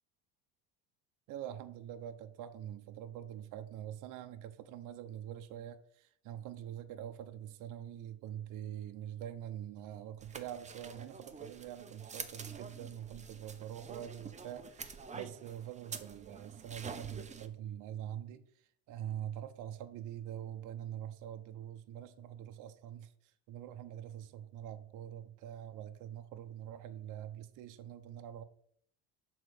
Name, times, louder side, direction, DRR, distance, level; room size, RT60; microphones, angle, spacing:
voice 1, 1.3-18.4 18.9-23.1 23.5-28.4, right 10 dB, 60° right, 8 dB, 0.7 m, -44 dB
sound 1, 10.2-17.5, right 5 dB, 20° right, 0.7 m, -48 dB
6.2 x 3.9 x 6.1 m, 0.63 s
cardioid pair, 105°, 34 cm